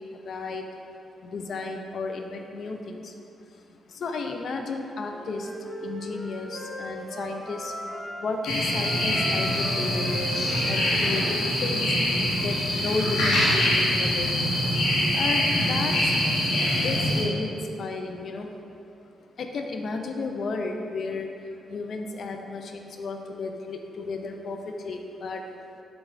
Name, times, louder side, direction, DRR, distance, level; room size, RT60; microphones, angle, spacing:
voice 1, 0.1-0.6 1.2-3.2 3.7-7.7 8.2-10.2 10.7-12.0 12.4-14.4 15.1-16.1 16.8-18.6 19.4-21.3 21.7-25.4, left 3 dB, 65° left, 4 dB, 0.4 m, -33 dB
Wind instrument woodwind instrument, 4.8-8.2 8.6-12.3, right 1 dB, 55° right, 0.9 m, -38 dB
sound 1, 8.4-17.2, left 1 dB, 85° left, 0.9 m, -24 dB
5.2 x 2.3 x 3.7 m, 2.6 s
cardioid pair, 65°, 0 cm